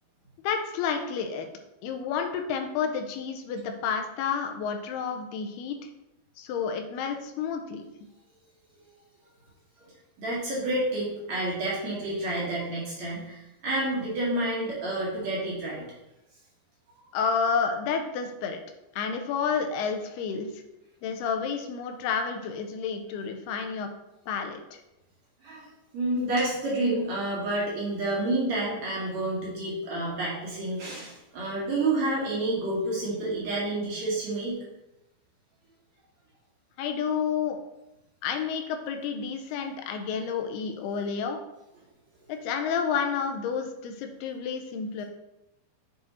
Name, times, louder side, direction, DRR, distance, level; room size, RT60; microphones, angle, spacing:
voice 1, 0.4-1.5 1.8-5.9 6.4-7.8 17.1-18.6 19.0-20.5 21.0-23.9 24.3-24.8 36.8-37.6 38.2-41.4 42.3-45.1, left 6 dB, 85° left, 5 dB, 2.7 m, -30 dB
voice 2, 10.2-15.9 25.4-25.7 25.9-34.6, right 2 dB, 50° right, -6 dB, 2.8 m, -29 dB
7.2 x 4.8 x 4.3 m, 0.91 s
omnidirectional pair, 4.6 m